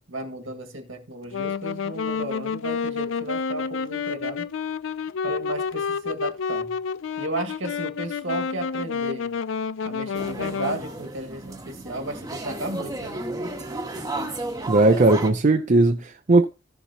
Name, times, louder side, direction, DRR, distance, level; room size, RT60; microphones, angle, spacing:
voice 1, 0.0-4.5 5.2-6.8 7.2-9.3 9.8-13.6, right 1 dB, 75° right, 1.9 m, -34 dB
Wind instrument woodwind instrument, 1.3-10.8, left 5 dB, 70° left, 0.4 m, -29 dB
sound 1, 10.1-15.3, right 2 dB, 20° right, 1.3 m, -33 dB
voice 2, 14.7-16.4, right 2 dB, 40° right, 0.5 m, -18 dB
14.5 x 7.0 x 2.9 m
head